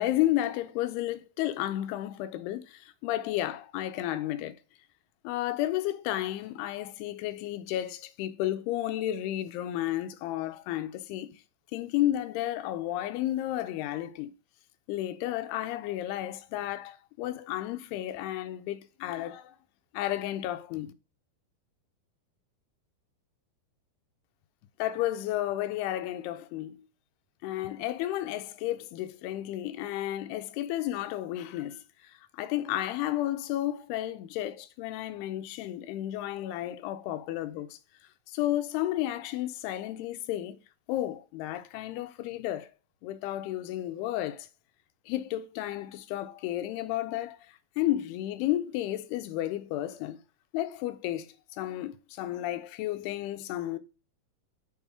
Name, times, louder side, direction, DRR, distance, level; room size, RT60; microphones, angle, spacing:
voice 1, 0.0-4.6 5.2-11.4 11.7-14.3 14.9-19.5 19.9-20.9 24.8-26.9 27.4-37.8 38.3-40.6 40.9-42.7 43.0-44.5 45.1-47.4 47.8-50.2 50.5-53.8, left 14 dB, 85° left, 2.6 m, -32 dB
6.9 x 4.4 x 4.7 m
omnidirectional pair, 4.6 m